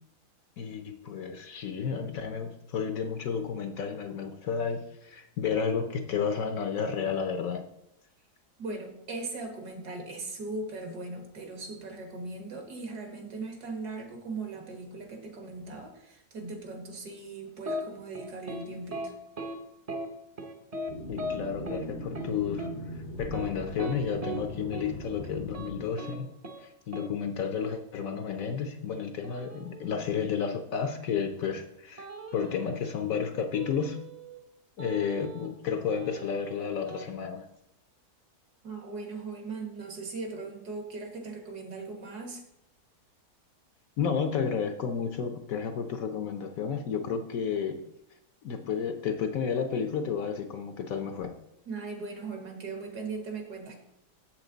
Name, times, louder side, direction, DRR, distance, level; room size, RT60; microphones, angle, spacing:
voice 1, 0.6-7.7 21.1-26.3 26.6-32.1 32.3-34.0 34.8-37.4 44.0-47.8 48.4-51.4, left 6 dB, 65° left, 7 dB, 1.0 m, -32 dB
voice 2, 8.6-19.1 38.6-42.4 51.7-53.8, right 3 dB, 70° right, 3 dB, 2.0 m, -39 dB
sound 1, 17.6-17.8 18.1-18.6 18.9-19.1 19.4-19.5 19.9-20.1 20.4-20.9 21.2-21.3 21.7-21.8 22.1-22.3 22.6-22.7 23.2-24.4 24.7-24.9 25.2-25.7 26.0-26.1 26.4-26.6 26.9-27.1 29.2-30.0 32.0-32.7 33.5-34.4 34.8-35.6 35.9-37.1, right 1 dB, 35° right, 0.6 m, -38 dB
sound 2, 20.9-25.9, left 1 dB, 50° left, 0.6 m, -40 dB
7.4 x 7.4 x 3.9 m, 0.81 s
omnidirectional pair, 1.8 m